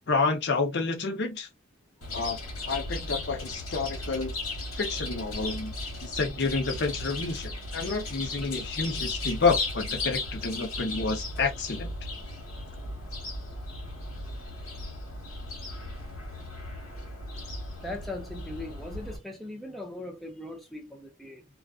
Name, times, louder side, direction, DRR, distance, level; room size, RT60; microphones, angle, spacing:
voice 1, 0.1-1.5 2.1-2.4 2.7-4.3 4.8-5.7 6.0-11.9, left 4 dB, 55° left, 0.6 m, -29 dB
Chirp tweet, 2.0-19.2, left 2 dB, 85° left, 1.2 m, -36 dB
voice 2, 17.8-21.4, left 2 dB, ahead, 0.4 m, -39 dB
2.4 x 2.3 x 2.3 m
head